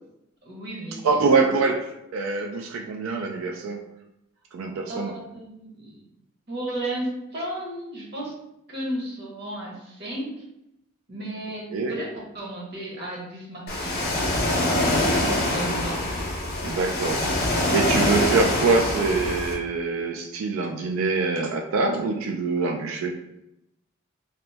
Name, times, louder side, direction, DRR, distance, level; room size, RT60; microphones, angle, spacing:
voice 1, 0.4-1.1 4.9-6.1 6.5-8.3 8.7-10.4 11.1-14.1 14.7-16.0, right 1 dB, 55° right, -3 dB, 1.0 m, -34 dB
voice 2, 1.0-3.9 4.5-5.2 11.7-11.9 16.6-23.1, right 4 dB, 90° right, 2 dB, 0.3 m, -25 dB
Ocean, 13.7-19.5, left 1 dB, 50° left, 0.7 m, -24 dB
2.8 x 2.0 x 3.3 m, 0.84 s
head